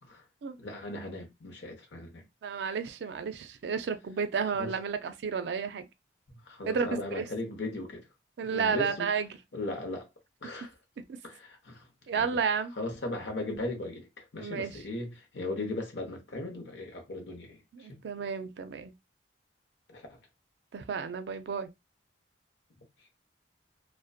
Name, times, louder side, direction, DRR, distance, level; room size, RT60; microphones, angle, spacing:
voice 1, 0.6-2.2 4.6-4.7 6.3-8.1 8.4-9.1 9.5-10.1 10.4-10.7 11.2-11.9 12.2-12.4 12.8-18.0 19.9-20.2, left 2 dB, 80° left, 0.8 m, -38 dB
voice 2, 2.4-5.9 6.6-7.3 8.4-9.3 12.1-12.7 14.4-14.7 17.7-18.9 20.7-21.7, right 6 dB, 70° right, 0.4 m, -32 dB
2.5 x 2.1 x 2.4 m
head